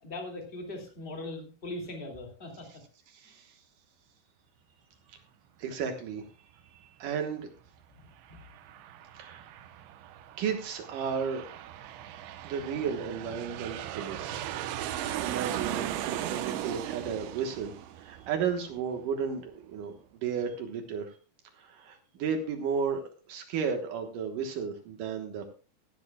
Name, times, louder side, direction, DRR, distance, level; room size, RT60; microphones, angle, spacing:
voice 1, 0.0-2.8 3.2-3.3 8.0-8.5, left 2 dB, 20° left, 2 dB, 1.5 m, -40 dB
voice 2, 3.1-3.6 5.1-5.2 5.6-6.3 6.7-7.5 9.2-9.5 10.4-11.6 12.4-14.5 14.8-21.1 21.6-25.5, right 6 dB, 65° right, 5 dB, 2.3 m, -34 dB
Aircraft, 8.0-19.2, right 12 dB, 85° right, 3.1 m, -38 dB
16.5 x 12.0 x 2.3 m, 0.35 s
omnidirectional pair, 5.1 m